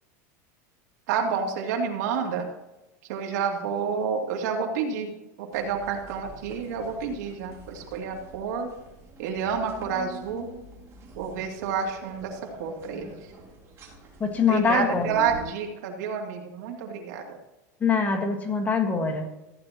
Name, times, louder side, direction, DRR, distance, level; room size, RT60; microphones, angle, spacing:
voice 1, 1.1-2.5 3.1-5.1 5.4-8.7 9.2-10.5 11.1-13.3 14.5-17.4, right 6 dB, 75° right, 2 dB, 2.6 m, -29 dB
sound 1, 5.5-15.5, right 2 dB, 30° right, 3.6 m, -45 dB
voice 2, 14.2-15.1 17.8-19.2, left 5 dB, 15° left, 3 dB, 1.6 m, -23 dB
15.0 x 10.0 x 3.0 m, 1.0 s
supercardioid pair, 145°, 9 cm